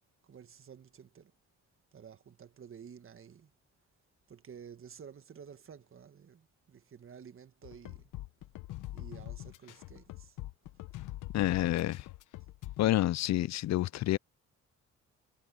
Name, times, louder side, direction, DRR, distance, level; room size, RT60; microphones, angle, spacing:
voice 1, 0.2-1.3 1.9-3.5 4.3-8.1 8.9-10.4 10.7-10.8, right 7 dB, 45° right, 1.6 m, -52 dB
sound 1, 7.6-12.9, left 16 dB, 85° left, 1.0 m, -44 dB
voice 2, 11.3-12.1 12.8-14.2, left 15 dB, 60° left, 0.5 m, -28 dB
cardioid pair, 90°, 30 cm